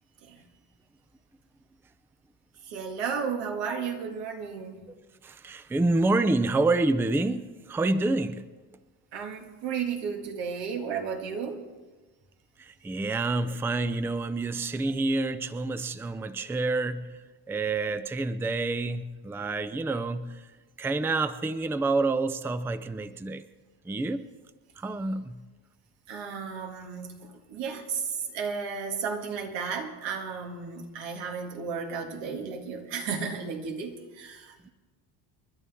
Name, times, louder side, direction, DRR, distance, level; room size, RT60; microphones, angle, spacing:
voice 1, 2.7-4.8 9.1-11.6 26.1-34.7, right 6 dB, 85° right, 3 dB, 2.1 m, -34 dB
voice 2, 5.2-8.5 12.6-17.2 17.5-20.5 20.8-23.5 23.9-24.3 24.8-25.4 34.6-34.7, right 2 dB, 5° right, 13 dB, 0.4 m, -28 dB
29.5 x 11.0 x 3.6 m, 1.3 s
cardioid pair, 120°, 42 cm